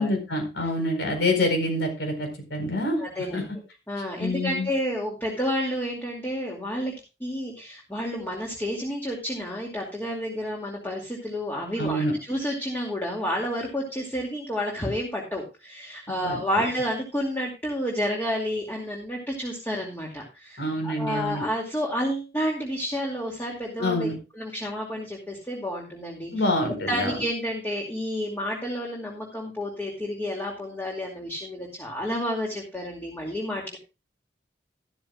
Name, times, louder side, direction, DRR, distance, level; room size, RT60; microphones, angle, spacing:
voice 1, 0.0-3.0 3.3-3.4 4.2-4.7 11.8-12.1 16.2-16.4 20.6-21.4 23.8-24.2 26.3-27.2, left 1 dB, 75° left, 4 dB, 4.6 m, -26 dB
voice 2, 3.0-3.5 3.9-6.9 7.2-24.1 24.3-26.5 26.9-33.8, equal, 10° left, -2 dB, 2.4 m, -30 dB
13.0 x 13.0 x 2.4 m, 0.29 s
head